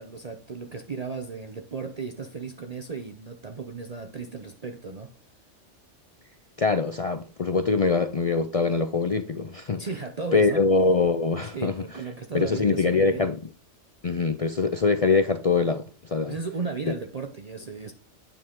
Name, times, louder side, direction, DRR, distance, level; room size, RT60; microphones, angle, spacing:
voice 1, 0.0-5.1 9.8-10.6 11.5-13.3 16.3-17.9, right 4 dB, 40° right, 0.7 m, -35 dB
voice 2, 6.6-9.8 10.3-11.8 12.3-13.4 14.0-16.3 16.9-17.0, left 4 dB, 50° left, 0.4 m, -23 dB
9.0 x 6.4 x 3.7 m
omnidirectional pair, 1.2 m